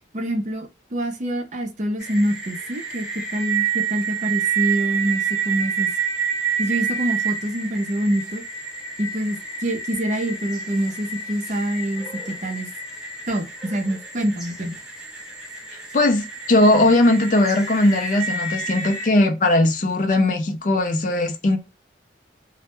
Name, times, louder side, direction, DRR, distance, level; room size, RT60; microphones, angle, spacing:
voice 1, 0.1-3.1 3.3-5.9 6.6-8.4 9.0-12.7 13.3-14.8, right 1 dB, 40° right, 0.5 m, -26 dB
sound 1, 2.0-19.1, right 6 dB, 5° right, 0.8 m, -29 dB
voice 2, 15.7-21.6, left 2 dB, 45° left, 0.4 m, -19 dB
2.1 x 2.1 x 2.8 m
head